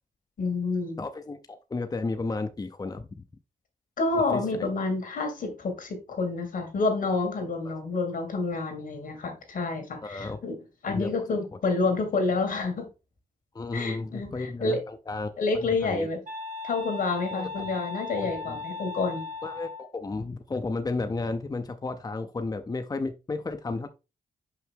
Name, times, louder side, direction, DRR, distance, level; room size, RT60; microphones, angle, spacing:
voice 1, 0.4-1.0 4.0-10.6 10.8-12.9 13.7-14.8 15.4-16.2 16.6-19.2, left 3 dB, 80° left, 2.5 m, -28 dB
voice 2, 1.0-3.2 4.1-4.7 7.6-7.7 10.0-10.4 10.9-11.1 13.5-15.3 15.6-16.1 17.3-17.7 18.2-18.6 19.4-23.9, left 3 dB, 30° left, 0.7 m, -33 dB
sound 1, 16.3-19.9, left 3 dB, 65° right, 1.6 m, -37 dB
5.7 x 5.6 x 3.7 m
cardioid pair, 85°, 14 cm